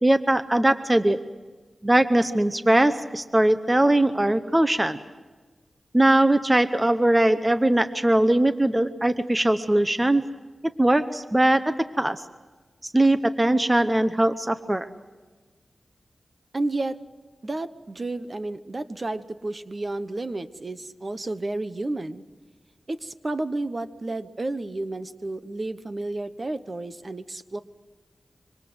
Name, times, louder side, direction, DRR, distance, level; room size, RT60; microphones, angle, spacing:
voice 1, 0.0-1.2 1.8-5.0 5.9-10.3 10.8-12.2 12.8-14.9, right 1 dB, 15° right, 10 dB, 0.9 m, -21 dB
voice 2, 16.5-17.0 17.4-22.2 22.9-27.6, right 2 dB, 35° right, 11 dB, 1.1 m, -31 dB
25.5 x 25.0 x 7.9 m, 1.3 s
wide cardioid pair, 95°, 0 cm